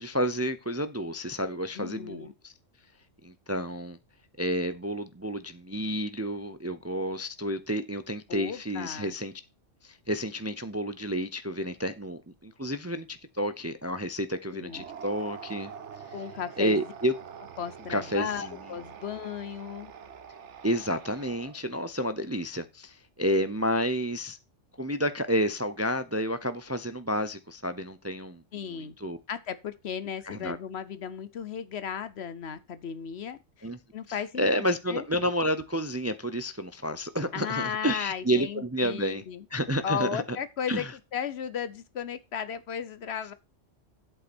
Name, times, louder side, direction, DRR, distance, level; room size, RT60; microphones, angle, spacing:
voice 1, 0.0-2.5 3.2-4.0 4.4-9.3 9.8-15.7 16.6-17.1 17.9-18.5 20.6-24.4 24.8-29.2 30.2-30.6 33.6-33.8 34.1-39.2 39.5-40.4 40.7-40.9, equal, 15° right, 0.5 m, -30 dB
voice 2, 1.8-2.3 8.3-9.2 14.5-14.8 16.1-16.8 17.6-19.9 28.5-28.9 29.3-34.5 34.9-35.0 37.3-39.4 39.8-40.9 41.1-43.3, left 8 dB, 60° left, 1.0 m, -35 dB
sound 1, 14.6-21.8, right 7 dB, 70° right, 1.2 m, -45 dB
11.0 x 8.2 x 4.4 m
omnidirectional pair, 1.3 m